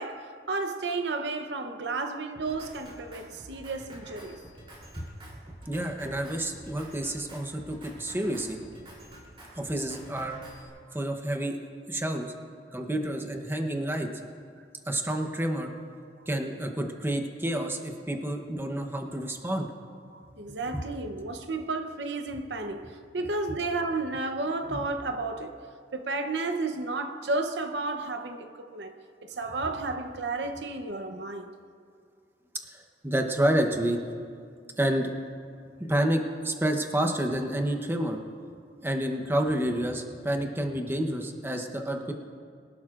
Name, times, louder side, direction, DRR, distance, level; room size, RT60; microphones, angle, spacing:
voice 1, 0.0-4.4 9.5-9.6 10.9-11.0 16.2-16.3 20.1-25.6 25.9-28.9 29.2-31.5, right 3 dB, 70° right, 0.7 m, -32 dB
Drum kit, 2.3-10.7, equal, 30° right, 3.2 m, -48 dB
voice 2, 5.7-8.6 9.6-10.4 10.9-11.6 11.9-12.3 12.7-14.1 14.9-15.7 16.3-19.7 20.7-20.8 24.7-24.8 32.6-34.0 34.8-35.1 35.9-38.2 38.8-42.1, right 1 dB, 10° right, 0.8 m, -29 dB
23.5 x 12.0 x 2.5 m
head